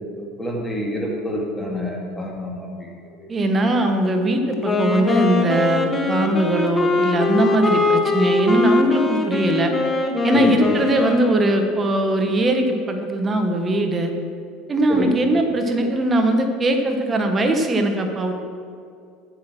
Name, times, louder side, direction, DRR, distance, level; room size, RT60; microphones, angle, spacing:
voice 1, 0.1-2.9 3.2-3.3 10.3-10.5 14.9-15.1, equal, 5° left, -2 dB, 2.5 m, -27 dB
voice 2, 3.3-9.7 10.2-14.1 14.7-18.3, right 1 dB, 25° right, 5 dB, 1.3 m, -20 dB
Wind instrument woodwind instrument, 4.5-11.7, left 3 dB, 25° left, 1.2 m, -21 dB
8.8 x 8.4 x 6.2 m, 2.3 s
figure-of-eight pair, 70°, 0 cm